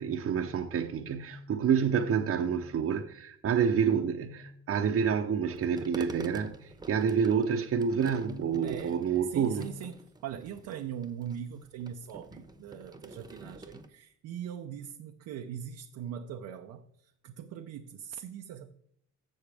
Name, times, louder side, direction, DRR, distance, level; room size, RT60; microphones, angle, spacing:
voice 1, 0.0-9.7, right 7 dB, 50° right, 0.8 m, -28 dB
sound 1, 5.5-13.9, right 2 dB, 15° right, 1.0 m, -48 dB
voice 2, 8.6-9.0 9.3-18.7, right 9 dB, 85° right, 0.7 m, -41 dB
11.5 x 7.2 x 3.4 m
cardioid pair, 90°, 30 cm